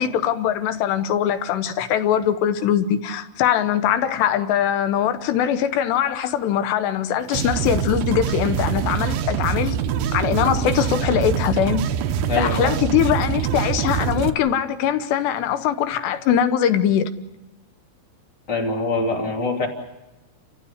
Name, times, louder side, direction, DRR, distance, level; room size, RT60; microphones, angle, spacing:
voice 1, 0.0-9.8 10.1-11.9 12.4-17.1, left 9 dB, 75° left, 3.0 m, -21 dB
sound 1, 7.3-14.3, right 8 dB, 90° right, 2.0 m, -24 dB
voice 2, 12.3-12.8 18.5-19.7, left 3 dB, 25° left, 2.7 m, -24 dB
30.0 x 15.0 x 8.1 m
omnidirectional pair, 5.4 m